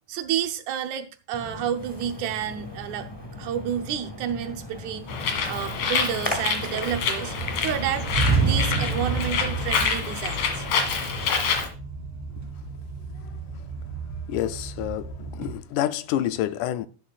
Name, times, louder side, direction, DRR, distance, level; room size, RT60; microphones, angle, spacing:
voice 1, 0.1-3.1 3.4-5.1 5.5-7.3 7.6-8.1 8.4-10.6, right 9 dB, 75° right, 2.1 m, -30 dB
Splash splatter, 1.3-10.0, left 1 dB, 15° left, 0.8 m, -38 dB
sound 1, 4.3-5.0 5.4-6.5 6.9-15.5, right 4 dB, 55° right, 3.5 m, -30 dB
Bird, 5.1-11.7, left 5 dB, 60° left, 2.9 m, -27 dB
voice 2, 13.2-13.7 14.3-16.9, left 12 dB, 80° left, 2.1 m, -29 dB
11.0 x 11.0 x 2.4 m
omnidirectional pair, 3.6 m